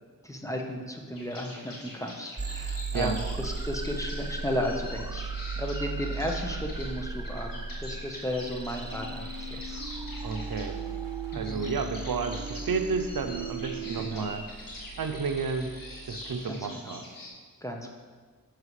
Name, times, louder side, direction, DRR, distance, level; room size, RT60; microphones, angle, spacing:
voice 1, 0.2-9.8 11.3-11.6 14.0-14.4 16.5-17.0 17.6-17.9, left 1 dB, 10° left, 1 dB, 1.0 m, -34 dB
sound 1, 1.1-17.3, left 1 dB, 75° left, 1.7 m, -45 dB
sound 2, 2.4-16.4, right 4 dB, 15° right, 0.3 m, -37 dB
sound 3, 8.9-14.1, right 4 dB, 70° right, 1.1 m, -40 dB
voice 2, 10.2-10.7 11.3-14.5 15.0-15.7 16.1-17.0, right 5 dB, 85° right, 7 dB, 0.7 m, -31 dB
10.5 x 6.4 x 3.2 m, 1.5 s
wide cardioid pair, 65°, 34 cm